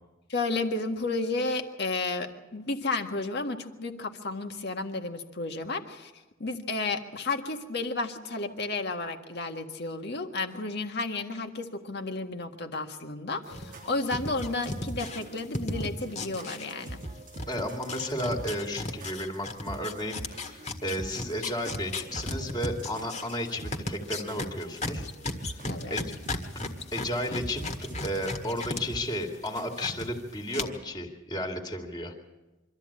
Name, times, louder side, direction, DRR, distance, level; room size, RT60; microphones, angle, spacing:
voice 1, 0.3-6.1 6.4-17.0 25.7-26.0, left 3 dB, 60° left, 5 dB, 1.7 m, -32 dB
sound 1, 13.5-17.1 17.3-28.8 29.1-30.1 30.5-30.6, left 2 dB, 35° left, 1.7 m, -35 dB
sound 2, 13.5-30.1, right 2 dB, 45° right, 1.2 m, -44 dB
voice 2, 17.5-25.1 25.4-25.6 25.9-26.1 26.5-32.1, equal, 20° left, 3 dB, 2.4 m, -33 dB
24.5 x 13.5 x 8.7 m, 1.1 s
head